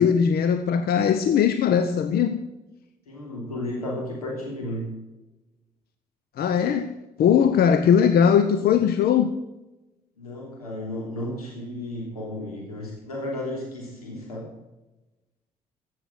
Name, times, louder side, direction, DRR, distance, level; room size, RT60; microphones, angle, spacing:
voice 1, 0.0-2.5 6.4-9.3, left 7 dB, 60° left, 0.9 m, -20 dB
voice 2, 3.1-5.0 10.2-14.5, left 1 dB, 90° left, 3.1 m, -33 dB
15.0 x 7.1 x 6.3 m
figure-of-eight pair, 45°, 19 cm